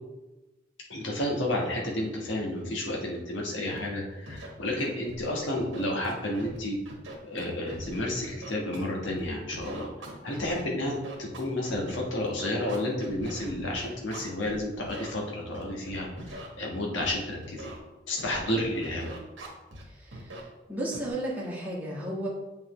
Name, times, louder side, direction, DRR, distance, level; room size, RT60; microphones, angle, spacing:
voice 1, 0.9-6.8 7.2-9.9 10.2-17.7 18.1-19.1, left 1 dB, 75° left, -1 dB, 1.4 m, -31 dB
Scratching (performance technique), 3.7-3.8 4.3-4.5 4.8-5.3 5.6-6.6 6.9-9.2 9.5-14.6 14.8-15.1 15.5-16.5 17.0-17.1 17.4-17.8 18.2-19.8 20.1-20.4 20.9-21.1, right 1 dB, 90° right, 1.6 m, -42 dB
voice 2, 19.8-22.3, right 1 dB, 10° right, -5 dB, 1.5 m, -34 dB
7.3 x 5.5 x 3.2 m, 1.1 s
head